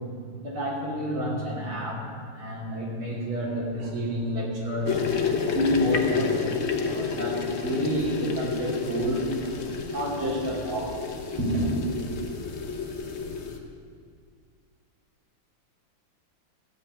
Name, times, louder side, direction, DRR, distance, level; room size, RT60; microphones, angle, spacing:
voice 1, 0.0-5.0 5.5-9.4 9.8-11.0 11.4-11.7, equal, 75° right, -4 dB, 3.5 m, -29 dB
sound 1, 4.9-13.6, left 5 dB, 50° left, 0.8 m, -30 dB
14.0 x 5.8 x 9.2 m, 2.2 s
omnidirectional pair, 2.4 m